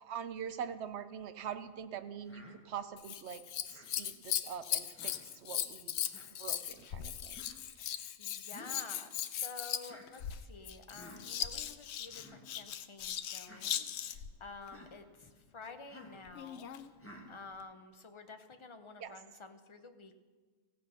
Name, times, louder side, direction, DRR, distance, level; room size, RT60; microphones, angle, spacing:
voice 1, 0.0-6.0 6.4-7.4 19.0-19.1, right 8 dB, 65° right, 10 dB, 0.9 m, -43 dB
Human voice, 2.3-2.6 3.7-3.9 4.9-5.2 6.1-6.3 7.3-7.6 8.5-8.9 9.8-10.1 10.9-11.2 12.0-12.4 13.4-13.6 14.6-14.9 15.9-16.2 17.0-17.3, left 1 dB, 10° left, 1.5 m, -53 dB
Scissors, 3.0-14.3 16.3-16.9 17.6-17.7, left 10 dB, 70° left, 0.8 m, -38 dB
voice 2, 7.8-16.7 17.3-20.2, left 4 dB, 30° left, 7 dB, 0.6 m, -51 dB
16.0 x 7.7 x 5.6 m, 1.4 s
omnidirectional pair, 1.3 m